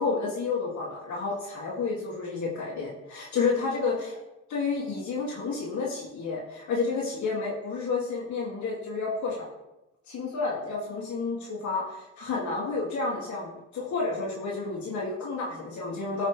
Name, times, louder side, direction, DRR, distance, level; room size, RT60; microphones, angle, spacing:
voice 1, 0.0-4.2 4.5-9.5 10.1-16.3, left 4 dB, 70° left, -5 dB, 2.4 m, -30 dB
13.5 x 5.7 x 3.3 m, 0.94 s
cardioid pair, 90°, 30 cm